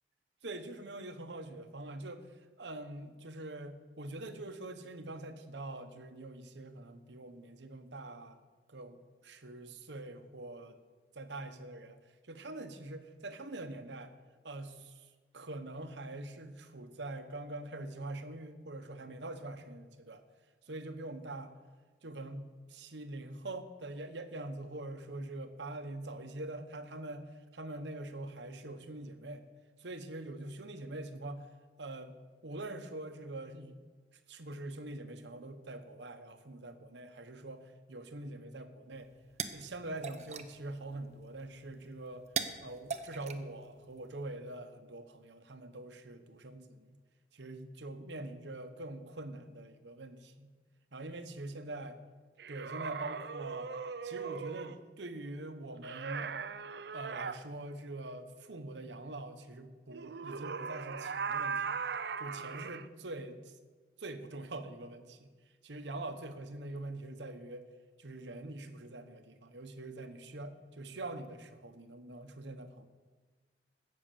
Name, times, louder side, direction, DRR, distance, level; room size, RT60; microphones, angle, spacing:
voice 1, 0.4-2.2 2.6-8.4 8.7-10.8 11.1-12.0 12.3-14.1 14.4-15.1 15.3-20.2 20.7-21.6 22.0-27.3 27.5-29.4 29.8-31.5 31.8-32.2 32.4-33.8 34.3-39.1 39.5-42.3 42.6-47.0 47.3-50.5 50.9-51.9 52.5-53.7 54.0-56.3 56.9-61.9 62.2-63.5 64.0-65.3 65.6-67.7 68.0-72.9, right 2 dB, 85° right, 9 dB, 1.1 m, -44 dB
sound 1, 38.9-44.2, right 6 dB, 40° right, 0.8 m, -43 dB
sound 2, 52.4-54.8 55.8-57.4 59.9-62.9, right 6 dB, 70° right, 0.5 m, -39 dB
16.5 x 6.7 x 6.9 m, 1.4 s
head